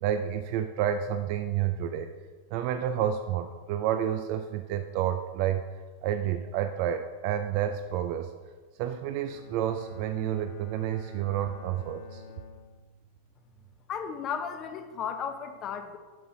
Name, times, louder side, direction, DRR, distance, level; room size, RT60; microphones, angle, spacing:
voice 1, 0.0-2.1 2.5-5.6 6.0-8.3 8.8-12.2, right 10 dB, 50° right, 8 dB, 0.4 m, -30 dB
Bowed string instrument, 9.2-13.3, left 2 dB, 60° left, 1.0 m, -47 dB
voice 2, 13.9-16.0, left 7 dB, 35° left, 8 dB, 0.8 m, -34 dB
7.5 x 5.5 x 4.4 m, 1.4 s
hypercardioid pair, 95°, 0 cm